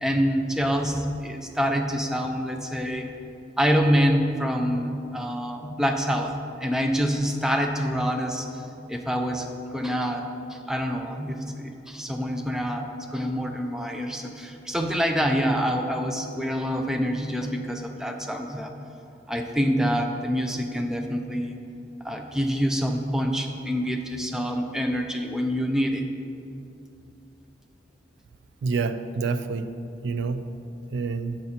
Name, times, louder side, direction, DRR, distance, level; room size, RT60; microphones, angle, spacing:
voice 1, 0.0-3.1 3.6-8.5 8.9-18.7 19.3-21.6 22.0-26.0, equal, 5° right, 3 dB, 0.3 m, -26 dB
voice 2, 28.6-29.8 30.0-30.4 30.9-31.4, right 4 dB, 85° right, 11 dB, 0.3 m, -27 dB
7.3 x 3.9 x 4.2 m, 2.7 s
head